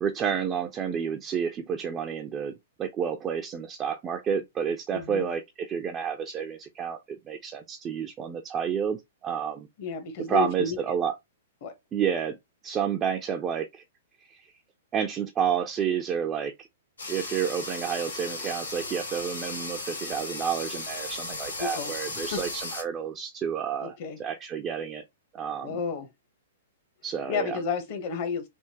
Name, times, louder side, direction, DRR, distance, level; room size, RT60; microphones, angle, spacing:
voice 1, 0.0-2.5 2.8-9.7 10.3-11.1 11.9-12.4 12.6-13.8 14.2-14.5 14.9-16.5 17.1-25.0 25.3-25.7 27.0-27.6, right 7 dB, 25° right, 0.5 m, -30 dB
voice 2, 4.9-5.3 9.8-11.0 11.6-11.7 21.6-22.4 23.8-24.2 25.6-26.1 27.3-28.5, left 5 dB, 45° left, 1.0 m, -32 dB
sound 1, 17.0-22.8, left 3 dB, 80° left, 1.8 m, -36 dB
3.5 x 2.7 x 2.7 m
figure-of-eight pair, 110°, 0 cm